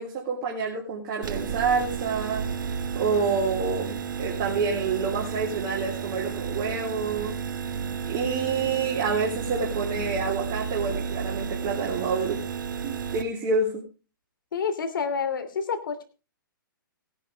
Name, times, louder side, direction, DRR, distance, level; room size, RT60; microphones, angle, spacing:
voice 1, 0.0-2.5 2.9-7.4 8.1-12.4 12.8-13.8, right 4 dB, 35° right, -1 dB, 3.4 m, -28 dB
sound 1, 1.2-13.2, right 7 dB, 65° right, 1.6 m, -32 dB
voice 2, 14.5-16.0, left 6 dB, 70° left, 9 dB, 2.9 m, -28 dB
17.5 x 10.5 x 3.4 m, 0.33 s
hypercardioid pair, 130°, 12 cm